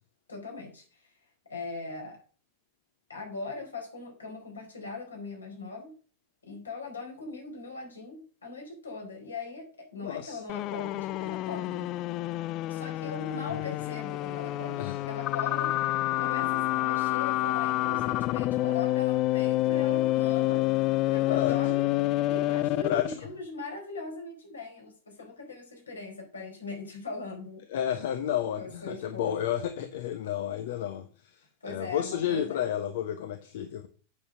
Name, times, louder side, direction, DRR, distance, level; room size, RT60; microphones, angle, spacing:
voice 1, 0.3-1.1 1.5-2.2 3.1-5.9 6.4-11.9 12.7-15.9 16.2-21.9 22.3-27.6 28.5-29.5 31.6-32.6, left 3 dB, 75° left, 4.4 m, -40 dB
voice 2, 9.9-10.4 14.8-15.0 21.2-21.6 22.8-23.1 27.7-33.9, left 10 dB, 55° left, 0.9 m, -31 dB
sound 1, 10.5-23.2, left 17 dB, 40° left, 0.4 m, -28 dB
8.5 x 6.9 x 6.2 m
figure-of-eight pair, 90°, 0 cm